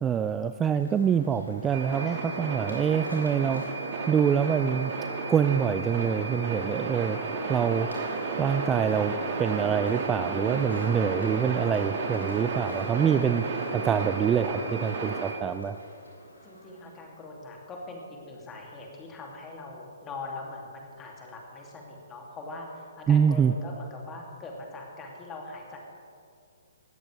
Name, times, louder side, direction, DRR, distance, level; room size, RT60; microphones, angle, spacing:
voice 1, 0.0-4.9 5.3-7.2 7.5-7.9 8.4-13.4 13.7-15.8 23.1-23.5, right 7 dB, 15° right, 10 dB, 0.3 m, -25 dB
sound 1, 0.7-17.2, left 1 dB, 85° left, 3.8 m, -49 dB
sound 2, 1.7-15.3, right 4 dB, 40° right, 2.0 m, -32 dB
voice 2, 2.0-2.6 16.4-25.8, left 2 dB, 15° left, -1 dB, 2.7 m, -42 dB
19.0 x 13.5 x 3.4 m, 2.4 s
figure-of-eight pair, 125°, 0 cm